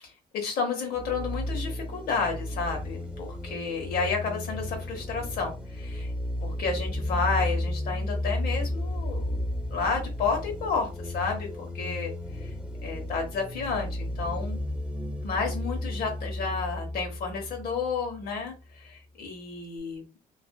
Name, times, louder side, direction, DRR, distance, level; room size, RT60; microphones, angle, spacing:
voice 1, 0.3-6.1 6.4-9.2 9.7-12.1 12.4-12.5 12.8-14.6 15.2-20.0, left 4 dB, 65° left, 2 dB, 1.0 m, -31 dB
sound 1, 0.9-18.4, left 1 dB, 5° right, 0.3 m, -33 dB
2.5 x 2.4 x 2.2 m, 0.29 s
cardioid pair, 110°, 17 cm